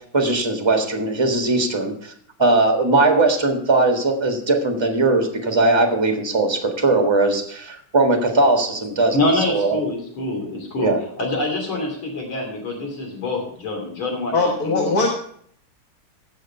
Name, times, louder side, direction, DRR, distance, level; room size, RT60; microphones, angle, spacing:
voice 1, 0.1-2.1 2.4-9.2 9.5-9.8 10.8-11.0, right 2 dB, 15° right, 3 dB, 1.4 m, -19 dB
voice 2, 9.1-14.9, left 2 dB, 70° left, 1 dB, 3.8 m, -25 dB
voice 3, 14.3-15.1, left 3 dB, 50° left, 0 dB, 1.8 m, -20 dB
16.0 x 6.5 x 4.4 m, 0.63 s
omnidirectional pair, 2.3 m